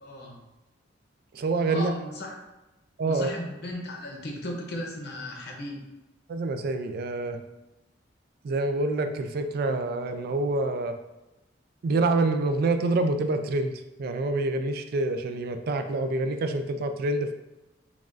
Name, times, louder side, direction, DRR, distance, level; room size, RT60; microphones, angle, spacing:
voice 1, 0.0-0.4 1.7-2.3 3.1-5.8, left 1 dB, 60° left, 1 dB, 0.8 m, -36 dB
voice 2, 1.3-1.9 3.0-3.3 6.3-7.4 8.4-10.9 11.8-13.7 14.0-17.3, right 2 dB, 55° right, 8 dB, 0.3 m, -26 dB
5.8 x 2.4 x 2.5 m, 1.0 s
head